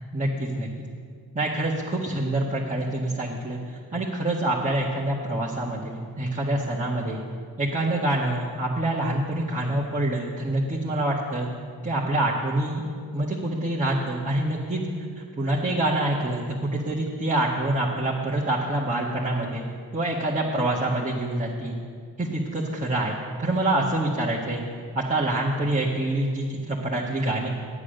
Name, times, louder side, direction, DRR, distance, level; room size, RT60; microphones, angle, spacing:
voice 1, 0.1-0.7 1.3-7.2 7.6-11.5 11.8-12.8 13.1-14.8 15.1-19.7 19.9-21.7 22.2-24.6 24.9-27.5, right 1 dB, 15° right, -6 dB, 1.7 m, -26 dB
9.9 x 8.3 x 6.6 m, 2.1 s
supercardioid pair, 50°, 42 cm